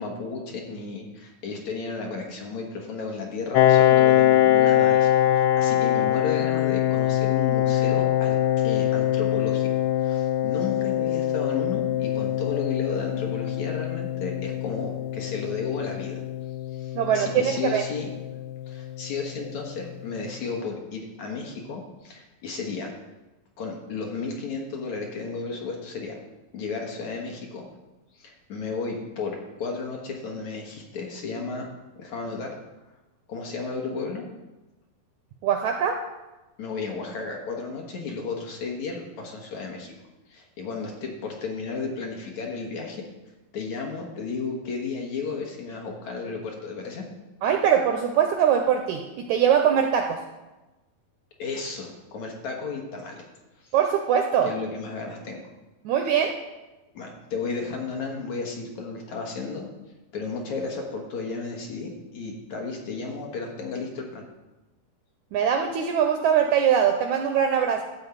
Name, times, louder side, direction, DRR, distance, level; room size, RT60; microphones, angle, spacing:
voice 1, 0.0-9.7 10.0-16.2 16.7-18.1 18.7-22.9 23.6-26.1 26.5-27.7 28.1-31.7 32.0-32.5 33.3-34.2 36.6-39.9 40.3-43.1 43.5-47.1 51.4-53.3 53.6-53.7 54.4-55.4 56.9-59.7 60.1-64.3, left 4 dB, 60° left, 1 dB, 2.3 m, -33 dB
Piano, 3.5-18.9, left 12 dB, 80° left, 2.0 m, -23 dB
voice 2, 17.0-17.8 35.4-36.0 47.4-50.2 53.7-54.5 55.9-56.3 65.3-67.8, right 8 dB, 80° right, 4 dB, 1.7 m, -22 dB
12.5 x 4.4 x 8.1 m, 1.1 s
omnidirectional pair, 4.1 m